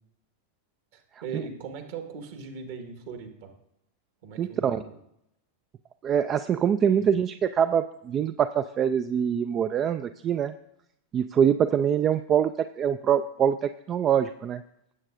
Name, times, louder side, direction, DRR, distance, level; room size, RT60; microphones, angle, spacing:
voice 1, 0.9-3.5 4.2-5.0 6.9-7.1, right 5 dB, 50° right, 6 dB, 1.6 m, -39 dB
voice 2, 4.4-4.8 6.0-10.5 11.1-14.6, right 8 dB, 30° right, 12 dB, 0.3 m, -24 dB
17.0 x 8.0 x 2.6 m, 0.79 s
figure-of-eight pair, 90°, 0 cm